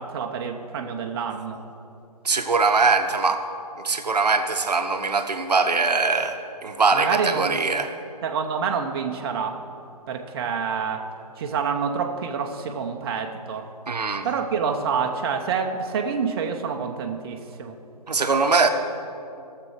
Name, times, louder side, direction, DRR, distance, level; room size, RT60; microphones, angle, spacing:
voice 1, 0.0-1.6 6.9-7.6 8.2-9.6 10.1-11.0 11.4-13.7 14.2-17.8, right 6 dB, 40° right, 3 dB, 0.8 m, -27 dB
voice 2, 2.2-3.4 3.8-7.9 13.9-14.3 18.1-18.7, right 4 dB, 80° right, 6 dB, 1.0 m, -22 dB
17.5 x 6.9 x 4.6 m, 2.6 s
figure-of-eight pair, 135°, 21 cm